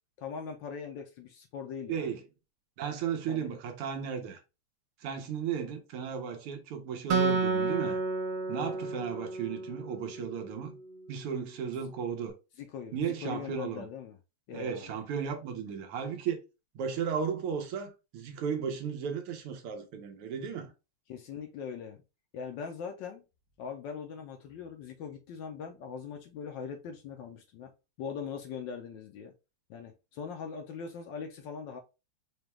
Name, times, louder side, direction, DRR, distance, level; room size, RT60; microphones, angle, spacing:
voice 1, 0.2-2.1 3.3-3.5 8.5-8.8 12.6-14.2 14.5-15.0 21.1-22.0 22.3-23.2 23.6-27.7 28.0-29.3 29.7-31.8, left 6 dB, 70° left, 1.1 m, -41 dB
voice 2, 2.8-4.4 5.0-8.0 8.5-10.8 11.1-12.3 12.9-13.9 14.5-16.4 16.8-20.7, right 7 dB, 85° right, 1.8 m, -35 dB
Acoustic guitar, 7.1-10.5, right 4 dB, 60° right, 1.1 m, -31 dB
4.9 x 2.3 x 3.0 m
omnidirectional pair, 2.4 m